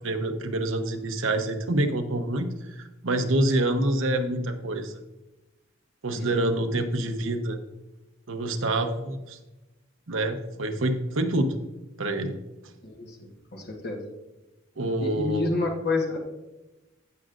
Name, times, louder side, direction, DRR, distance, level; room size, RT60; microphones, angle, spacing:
voice 1, 0.0-5.0 6.0-7.6 8.3-9.4 10.1-11.6 12.0-12.4 14.8-15.5, right 1 dB, 75° right, 6 dB, 0.9 m, -27 dB
voice 2, 6.1-6.4 12.8-14.0 15.0-16.2, left 2 dB, 50° left, 1 dB, 1.2 m, -29 dB
15.0 x 6.4 x 2.5 m, 1.0 s
head